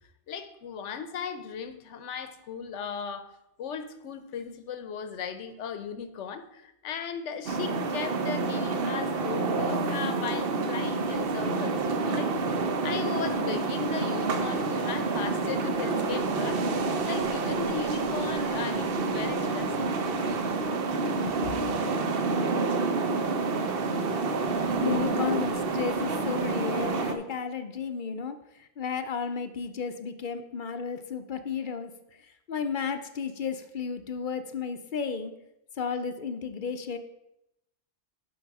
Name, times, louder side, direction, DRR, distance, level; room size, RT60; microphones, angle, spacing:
voice 1, 0.3-12.3 12.8-16.7 17.0-20.2 21.4-21.6, left 6 dB, 85° left, 10 dB, 1.1 m, -37 dB
sound 1, 7.5-27.2, right 3 dB, 55° right, 0.9 m, -28 dB
voice 2, 24.8-28.4 28.8-31.9 32.5-35.3 35.8-37.0, left 6 dB, 55° left, 8 dB, 0.7 m, -33 dB
11.5 x 4.7 x 4.7 m, 0.85 s
omnidirectional pair, 1.2 m